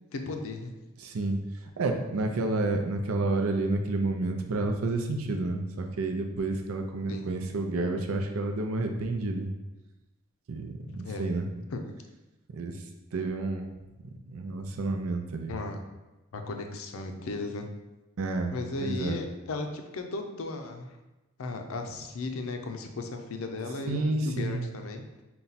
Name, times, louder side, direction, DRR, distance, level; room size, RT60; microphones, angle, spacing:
voice 1, 0.1-0.7 7.1-7.4 11.0-11.3 11.7-11.8 15.5-15.8 16.3-17.7 18.5-20.9 21.4-25.0, left 3 dB, 75° left, 5 dB, 0.5 m, -36 dB
voice 2, 1.0-1.4 1.8-9.5 10.5-11.5 12.5-12.8 13.1-13.7 14.3-15.5 18.2-18.5 18.8-19.2 23.8-24.7, right 2 dB, 90° right, 4 dB, 0.5 m, -30 dB
4.0 x 2.3 x 4.0 m, 1.1 s
head